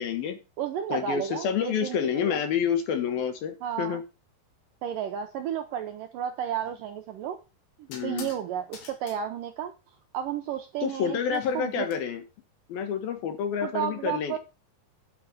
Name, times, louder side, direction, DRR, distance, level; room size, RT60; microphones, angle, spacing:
voice 1, 0.0-0.4 0.9-4.0 7.9-8.3 10.8-12.2 12.7-14.4, left 7 dB, 65° left, 8 dB, 3.1 m, -28 dB
voice 2, 0.6-2.4 3.6-4.0 4.8-7.4 7.8-9.7 10.1-11.9 13.6-14.4, right 9 dB, 75° right, 6 dB, 2.1 m, -32 dB
sound 1, 6.6-6.8 7.9-8.4 8.7-9.2 11.3-11.9, left 6 dB, 85° left, 4.5 m, -46 dB
9.5 x 5.7 x 7.7 m, 0.29 s
omnidirectional pair, 4.9 m